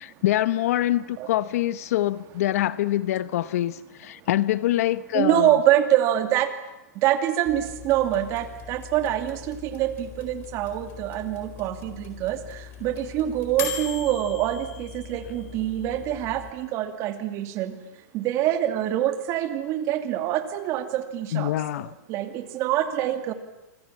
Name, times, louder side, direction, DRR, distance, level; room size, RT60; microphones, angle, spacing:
voice 1, 0.0-5.6 21.3-22.0, left 14 dB, 60° left, 0.9 m, -25 dB
voice 2, 5.1-6.5 7.0-12.4 12.8-17.7 18.1-21.5 22.1-23.3, right 12 dB, 30° right, 2.4 m, -25 dB
sound 1, 7.5-16.5, left 8 dB, 25° left, 4.1 m, -40 dB
27.5 x 25.5 x 7.4 m
supercardioid pair, 155°, 9 cm